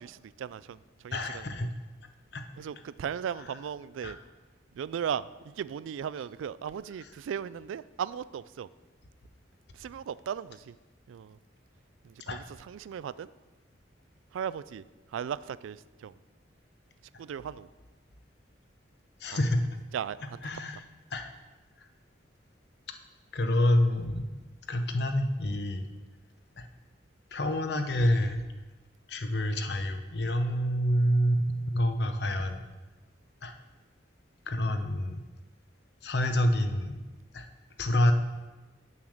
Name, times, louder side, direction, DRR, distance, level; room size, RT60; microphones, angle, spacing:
voice 1, 0.0-1.7 2.6-4.2 4.7-8.7 9.7-10.8 11.1-11.4 12.0-13.3 14.3-16.2 17.2-17.7 19.3-19.4 19.9-20.4, right 8 dB, 85° right, 18 dB, 0.3 m, -37 dB
voice 2, 1.1-1.7 2.3-2.4 4.0-4.1 12.3-12.4 19.2-19.7 20.4-20.8 21.1-21.3 23.3-24.3 24.7-25.8 26.6-26.7 27.3-28.4 29.1-32.7 33.4-33.5 34.5-35.2 36.0-37.0 37.3-37.5 37.8-38.1, left 1 dB, 55° left, 7 dB, 0.8 m, -27 dB
7.0 x 6.5 x 6.2 m, 1.2 s
head